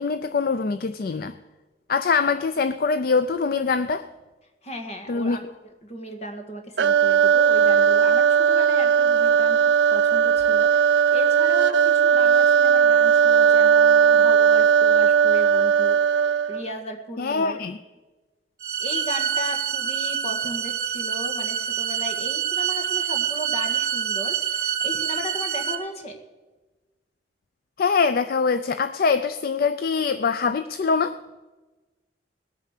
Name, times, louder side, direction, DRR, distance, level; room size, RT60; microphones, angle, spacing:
voice 1, 0.0-1.3 1.9-4.0 5.1-5.4 17.2-17.8 27.8-31.2, left 5 dB, 55° left, 12 dB, 0.4 m, -23 dB
voice 2, 4.6-5.4 5.8-9.6 9.9-17.6 18.8-26.2, equal, 35° left, 4 dB, 1.8 m, -36 dB
sound 1, 6.8-16.7, right 7 dB, 90° right, 0.5 m, -18 dB
sound 2, 18.6-25.7, right 9 dB, 55° right, 1.2 m, -26 dB
19.5 x 9.0 x 6.6 m, 1.2 s
head